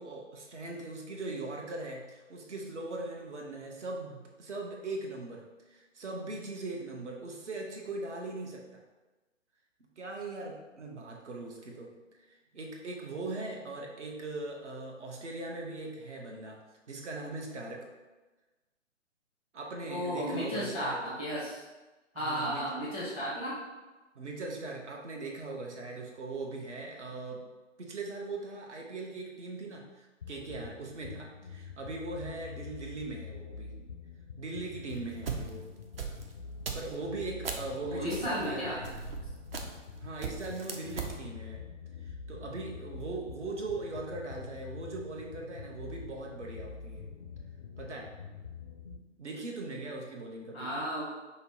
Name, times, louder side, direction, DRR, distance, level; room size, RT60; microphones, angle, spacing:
voice 1, 0.0-8.8 10.0-11.9 12.3-16.6 16.9-17.9 19.5-21.1 22.2-22.7 24.1-27.5 27.8-33.7 34.4-35.6 36.7-39.0 40.0-41.6 42.0-47.0 47.8-48.1 49.2-50.7, right 2 dB, 65° right, 0 dB, 0.9 m, -40 dB
voice 2, 19.9-21.6 22.1-23.6 37.8-38.8 50.5-51.0, equal, 10° right, -8 dB, 0.7 m, -34 dB
sound 1, 30.2-49.0, left 5 dB, 35° left, 0.4 m, -46 dB
sound 2, 34.9-37.7 38.1-39.9 40.2-41.2, right 6 dB, 50° right, 0.6 m, -39 dB
5.3 x 2.0 x 4.2 m, 1.2 s
figure-of-eight pair, 130°, 38 cm